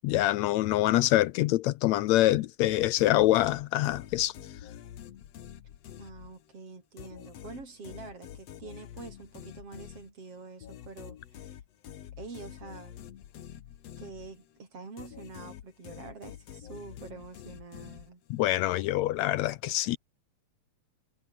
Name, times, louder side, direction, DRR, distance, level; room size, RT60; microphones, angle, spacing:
voice 1, 0.0-4.3 18.3-20.0, left 15 dB, 80° left, 1.9 m, -25 dB
sound 1, 2.6-6.6 7.0-14.6 15.0-18.4, left 10 dB, 60° left, 2.4 m, -47 dB
voice 2, 6.0-11.5 12.2-13.0 14.0-18.2, right 4 dB, 50° right, 5.5 m, -46 dB
omnidirectional pair, 3.4 m